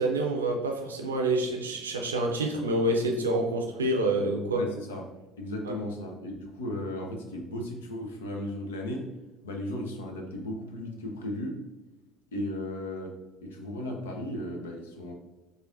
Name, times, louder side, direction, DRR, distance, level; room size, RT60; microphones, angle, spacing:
voice 1, 0.0-4.6 5.6-5.7, right 2 dB, 85° right, 2 dB, 0.5 m, -27 dB
voice 2, 4.5-5.0 5.4-9.1 9.4-11.5 12.3-13.1 13.4-15.1, left 1 dB, 80° left, 2 dB, 0.6 m, -35 dB
4.8 x 2.5 x 2.5 m, 1.1 s
figure-of-eight pair, 60°, 0 cm